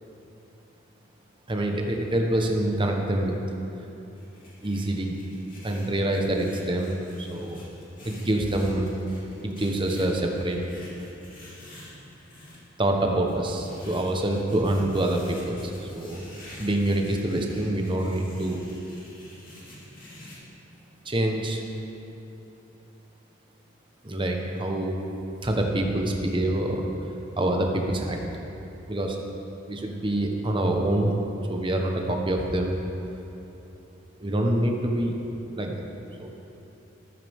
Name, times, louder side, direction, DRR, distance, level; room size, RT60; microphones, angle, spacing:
voice 1, 1.5-3.4 4.6-5.1 5.6-7.6 8.0-8.9 9.4-10.6 12.8-16.2 16.6-18.6 21.0-21.6 24.0-25.0 25.4-26.8 27.4-28.2 28.9-29.2 29.7-31.1 31.5-32.8 34.2-35.1 35.6-35.8 36.2-36.3, right 1 dB, 25° right, 2 dB, 1.1 m, -26 dB
sound 1, 4.1-12.6 13.3-20.4, left 1 dB, 45° left, 2.9 m, -47 dB
14.0 x 12.5 x 3.6 m, 3.0 s
head